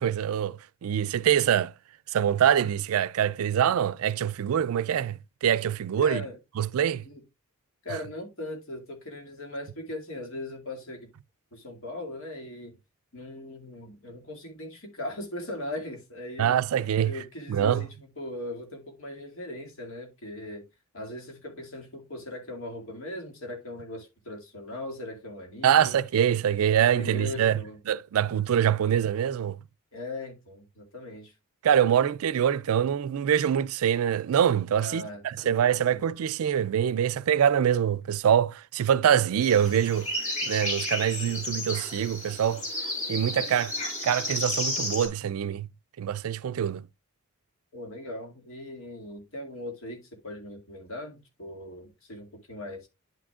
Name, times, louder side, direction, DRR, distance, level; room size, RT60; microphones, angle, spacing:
voice 1, 0.0-1.7 2.1-6.2 6.6-7.0 16.4-17.2 17.5-17.8 25.6-29.6 31.6-40.1 40.4-42.6 43.1-43.7 44.0-45.7 46.0-46.9, right 9 dB, 75° right, 0.3 m, -24 dB
voice 2, 6.0-6.4 7.0-7.2 7.8-11.1 11.5-12.7 13.1-16.6 17.0-20.6 20.9-26.0 26.5-27.8 29.9-31.3 34.8-35.6 35.9-36.1 47.7-52.9, left 1 dB, 65° left, 2.3 m, -39 dB
sound 1, 39.4-45.1, left 1 dB, 35° left, 4.0 m, -32 dB
10.5 x 6.1 x 2.4 m
head